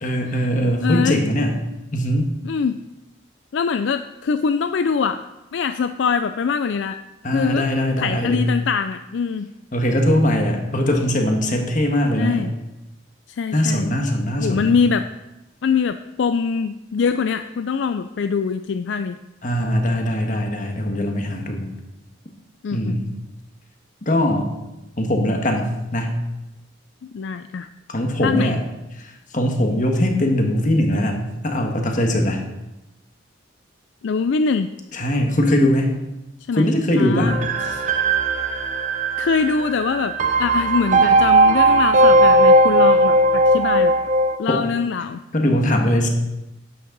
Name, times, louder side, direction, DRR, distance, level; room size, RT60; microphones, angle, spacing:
voice 1, 0.0-1.6 1.9-2.3 7.2-8.4 9.7-12.5 13.5-14.8 19.4-21.7 22.7-23.1 24.1-24.5 25.0-26.2 27.9-28.6 29.3-32.4 34.9-35.9 36.5-37.3 44.5-44.6 45.3-46.1, left 1 dB, 40° left, 3 dB, 1.5 m, -20 dB
voice 2, 0.8-1.2 2.4-2.8 3.5-5.2 5.5-7.0 7.3-7.7 8.0-9.5 12.2-12.5 13.3-13.9 14.4-15.1 15.6-19.2 22.6-23.0 27.1-27.7 28.2-28.6 34.0-34.7 36.5-36.7 37.0-37.9 39.2-40.1 40.4-43.9 44.4-45.2, left 5 dB, 65° left, 10 dB, 0.4 m, -23 dB
sound 1, 37.3-44.4, right 1 dB, 40° right, 0.5 m, -17 dB
11.0 x 8.4 x 4.0 m, 0.97 s
head